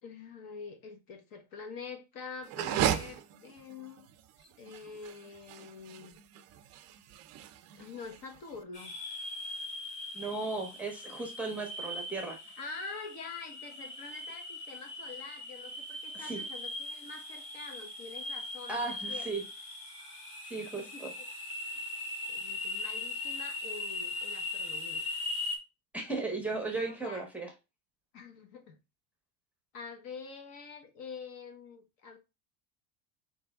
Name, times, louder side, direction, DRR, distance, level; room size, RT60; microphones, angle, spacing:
voice 1, 0.0-4.1 4.4-6.2 7.8-9.0 12.6-19.3 20.8-21.3 21.6-21.8 22.3-25.1 26.9-27.3 28.1-28.8 29.7-32.2, left 4 dB, 55° left, 1.2 m, -46 dB
sound 1, 2.4-8.6, right 10 dB, 40° right, 0.4 m, -36 dB
sound 2, 8.7-25.6, left 2 dB, 35° left, 1.1 m, -40 dB
voice 2, 10.1-12.4 16.1-16.4 18.7-19.4 20.5-21.1 25.9-27.5, right 3 dB, 5° right, 0.7 m, -36 dB
4.3 x 3.3 x 3.3 m
cardioid pair, 165°, 41 cm